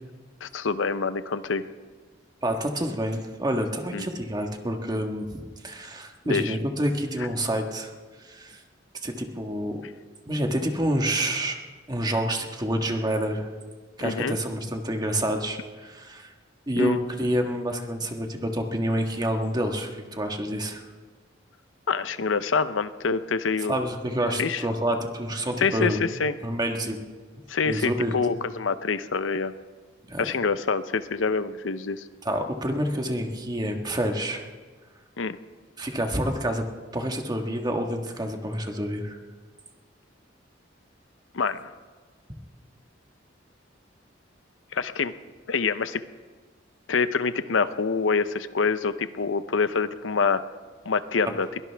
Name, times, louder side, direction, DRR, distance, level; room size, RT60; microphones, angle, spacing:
voice 1, 0.4-1.6 3.9-4.1 6.2-6.5 14.0-14.4 16.8-17.0 21.9-23.7 24.4-24.6 25.6-26.3 27.5-29.5 30.2-32.0 35.2-35.4 41.3-41.6 44.7-45.1 45.5-46.0 46.9-50.4 50.9-51.5, left 5 dB, 90° left, 13 dB, 0.7 m, -26 dB
voice 2, 2.4-5.3 5.6-7.9 8.2-8.6 9.0-9.8 10.3-11.6 11.9-13.5 14.0-16.3 16.7-20.8 23.7-26.0 26.4-27.0 27.7-28.4 30.1-30.2 32.2-34.4 35.8-36.6 36.9-39.2, right 1 dB, 20° right, 3 dB, 1.5 m, -28 dB
22.5 x 17.0 x 3.5 m, 1.4 s
head